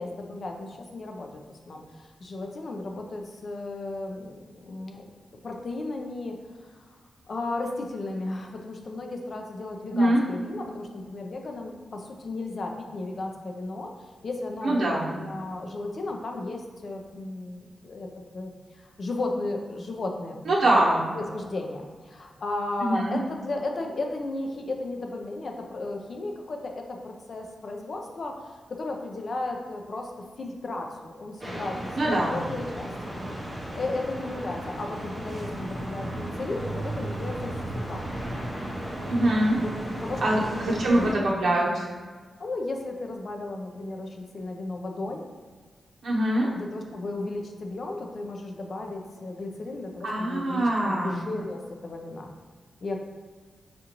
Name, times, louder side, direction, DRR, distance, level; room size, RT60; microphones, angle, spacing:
voice 1, 0.0-1.4 1.7-5.1 5.4-6.8 7.3-18.1 18.3-30.1 30.4-32.9 33.7-38.0 39.5-39.7 40.0-41.3 42.4-45.2 46.5-52.3 52.8-53.0, left 2 dB, 50° left, 2 dB, 0.5 m, -34 dB
voice 2, 14.6-15.1 20.5-21.0 22.8-23.2 32.0-32.4 39.1-39.6 40.2-41.9 46.0-46.5 50.0-51.1, right 1 dB, 70° right, -5 dB, 0.9 m, -23 dB
sound 1, 31.4-41.1, right 1 dB, 15° right, 0.7 m, -34 dB
5.0 x 2.5 x 2.9 m, 1.5 s
wide cardioid pair, 140°, 0 cm